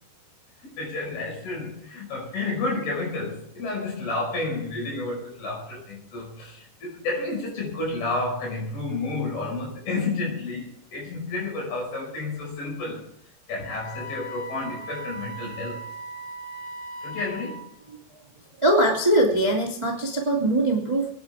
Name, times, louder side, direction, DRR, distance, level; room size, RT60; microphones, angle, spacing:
voice 1, 0.6-13.0 13.5-15.8 17.0-17.7, left 3 dB, 50° left, -1 dB, 7.1 m, -31 dB
Wind instrument woodwind instrument, 13.7-17.8, right 1 dB, 70° left, 5.9 m, -38 dB
voice 2, 18.6-21.1, right 1 dB, 35° right, -2 dB, 0.4 m, -21 dB
27.0 x 10.5 x 3.6 m, 0.73 s
omnidirectional pair, 5.8 m